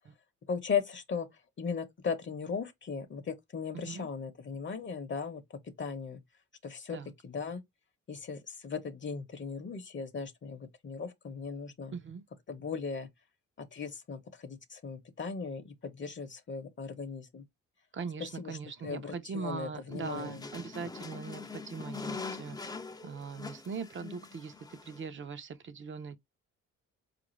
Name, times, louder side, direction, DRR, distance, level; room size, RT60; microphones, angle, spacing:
voice 1, 0.5-6.2 6.6-7.0 7.2-7.6 8.1-11.9 12.5-13.1 13.6-17.5 18.2-18.6 18.8-20.5, left 6 dB, 40° left, 0.8 m, -37 dB
voice 2, 3.7-4.1 6.9-7.1 11.9-12.2 17.9-26.2, right 5 dB, 40° right, 0.7 m, -41 dB
sound 1, 19.9-25.0, left 4 dB, 15° left, 0.5 m, -43 dB
4.4 x 2.5 x 3.1 m
cardioid pair, 90°, 30 cm